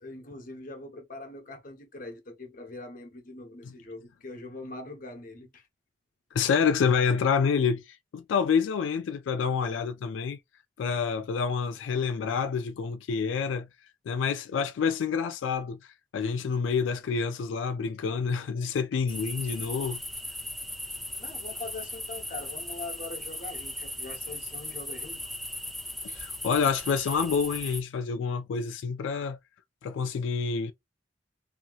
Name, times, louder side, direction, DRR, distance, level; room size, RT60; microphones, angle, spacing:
voice 1, 0.0-5.7 21.2-25.2, left 2 dB, 50° left, 0.9 m, -42 dB
voice 2, 6.3-10.4 10.8-13.7 14.1-20.0 26.0-29.4 29.8-30.7, left 6 dB, 85° left, 0.3 m, -28 dB
sound 1, 19.1-27.8, left 1 dB, ahead, 0.5 m, -38 dB
2.8 x 2.8 x 2.4 m
head